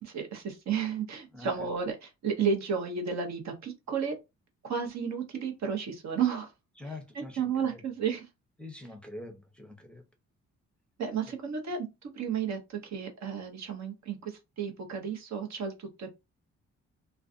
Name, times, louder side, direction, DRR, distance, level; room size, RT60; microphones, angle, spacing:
voice 1, 0.0-4.2 4.6-6.5 7.1-8.3 11.0-11.9 12.1-16.1, right 6 dB, 65° right, 0.9 m, -32 dB
voice 2, 1.3-1.7 6.8-7.8 8.6-10.0 11.3-11.4, left 2 dB, 5° left, 0.7 m, -45 dB
2.4 x 2.3 x 2.4 m
cardioid pair, 70°, 30 cm